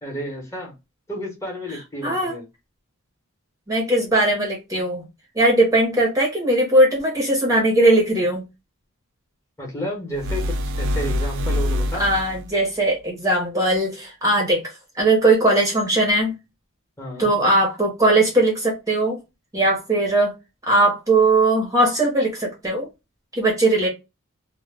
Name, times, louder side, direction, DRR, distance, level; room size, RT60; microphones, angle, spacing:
voice 1, 0.0-0.7 1.1-2.5 9.6-12.0 17.0-17.4, equal, 15° left, 0.9 m, -31 dB
voice 2, 2.0-2.3 3.7-5.0 5.4-8.4 12.0-14.6 15.0-16.3 17.2-19.2 19.5-20.3 20.7-22.9 23.3-23.9, right 2 dB, 15° right, 0.7 m, -19 dB
sound 1, 10.1-12.5, left 1 dB, 60° right, 0.3 m, -25 dB
2.1 x 2.0 x 3.2 m
head